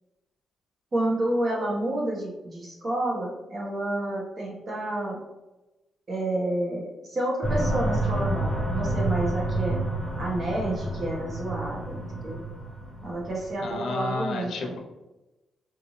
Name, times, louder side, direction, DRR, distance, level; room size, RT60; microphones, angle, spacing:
voice 1, 0.9-5.2 6.1-9.8 10.2-12.4 13.0-14.7, right 1 dB, 40° right, -3 dB, 1.4 m, -29 dB
sound 1, 7.4-13.7, right 1 dB, 20° right, 0.9 m, -29 dB
voice 2, 13.6-14.8, left 3 dB, 70° left, 3 dB, 0.8 m, -31 dB
4.4 x 3.2 x 2.7 m, 1.0 s
cardioid pair, 105°, 0 cm